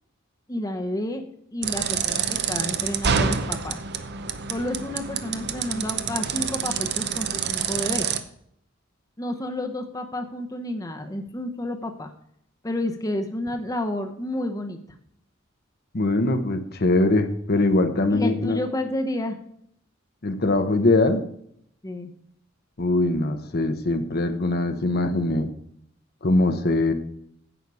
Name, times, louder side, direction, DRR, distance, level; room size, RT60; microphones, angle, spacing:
voice 1, 0.5-1.2 1.5-3.8 4.5-8.1 9.2-12.1 12.6-14.8 18.1-19.4 21.8-22.1, left 1 dB, 20° left, 4 dB, 0.9 m, -30 dB
sound 1, 1.6-8.2, right 7 dB, 60° right, 0.8 m, -27 dB
voice 2, 15.9-18.6 20.2-21.2 22.8-25.5 26.2-26.9, left 2 dB, 55° left, 7 dB, 1.0 m, -22 dB
11.0 x 8.2 x 4.8 m, 0.69 s
head